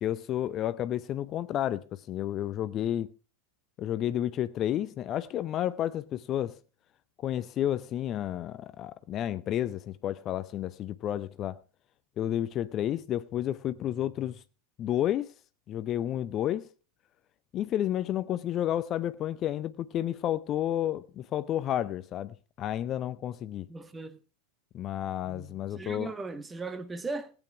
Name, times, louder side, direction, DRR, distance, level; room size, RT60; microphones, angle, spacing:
voice 1, 0.0-3.1 3.8-6.6 7.2-11.6 12.2-14.4 14.8-15.3 15.7-16.7 17.5-23.7 24.7-26.1, left 11 dB, 35° left, 0.6 m, -31 dB
voice 2, 23.7-24.2 25.2-27.3, right 3 dB, 15° right, 1.5 m, -38 dB
17.0 x 9.1 x 4.6 m
figure-of-eight pair, 90°, 0 cm